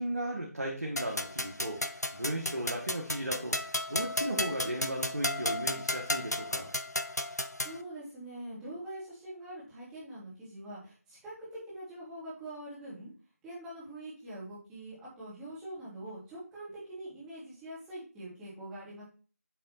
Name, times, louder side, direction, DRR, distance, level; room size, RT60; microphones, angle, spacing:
voice 1, 0.0-6.7, right 1 dB, 60° right, -1 dB, 1.8 m, -36 dB
sound 1, 1.0-7.8, left 1 dB, 80° left, 0.7 m, -34 dB
voice 2, 7.5-13.1 13.4-19.0, right 1 dB, 5° right, -9 dB, 2.3 m, -44 dB
8.6 x 3.7 x 4.2 m, 0.38 s
figure-of-eight pair, 165°, 9 cm